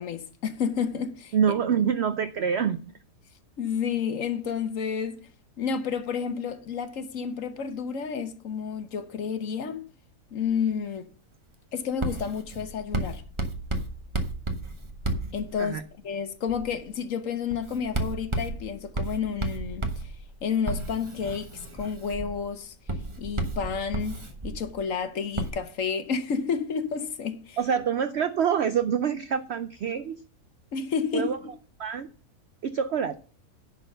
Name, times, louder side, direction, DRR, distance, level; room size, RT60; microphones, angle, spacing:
voice 1, 0.0-1.3 3.6-5.3 5.6-9.9 10.3-11.0 11.7-13.2 15.3-15.8 16.0-20.1 20.4-21.5 21.8-22.7 23.2-27.6 30.7-31.5, left 6 dB, 55° left, 1.2 m, -30 dB
voice 2, 1.3-2.9 15.6-15.8 27.6-30.2 31.1-31.4 31.8-32.1 32.6-33.2, right 7 dB, 70° right, 0.6 m, -26 dB
Writing, 12.0-15.9 16.5-16.8 17.5-24.9 25.4-25.5, right 2 dB, 20° right, 0.9 m, -33 dB
10.5 x 4.1 x 6.5 m
omnidirectional pair, 1.7 m